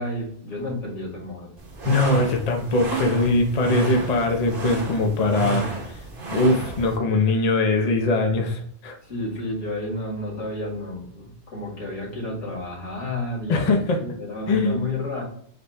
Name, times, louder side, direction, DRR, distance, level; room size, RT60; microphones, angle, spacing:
voice 1, 0.0-1.5 9.0-15.2, left 1 dB, 90° left, -3 dB, 2.2 m, -31 dB
sound 1, 1.6-7.0, right 4 dB, 50° right, 1.3 m, -31 dB
voice 2, 1.8-6.0 6.3-9.0 13.5-14.0 14.5-14.9, left 2 dB, 40° left, 3 dB, 0.7 m, -22 dB
5.0 x 2.3 x 4.6 m, 0.63 s
omnidirectional pair, 1.2 m